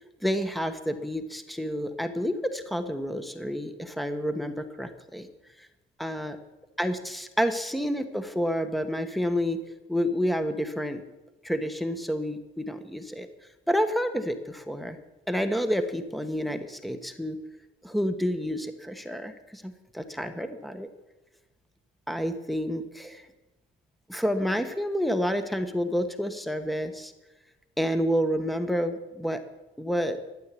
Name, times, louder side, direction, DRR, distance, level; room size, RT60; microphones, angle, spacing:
voice 1, 0.2-5.3 5.6-5.7 6.0-6.4 6.8-9.6 9.9-11.0 11.4-13.3 13.7-15.0 15.3-17.4 17.8-20.9 22.1-23.3 24.1-27.1 27.8-29.4 29.8-30.2, equal, ahead, 9 dB, 1.3 m, -29 dB
13.0 x 9.0 x 8.5 m, 1.1 s
cardioid pair, 90°, 20 cm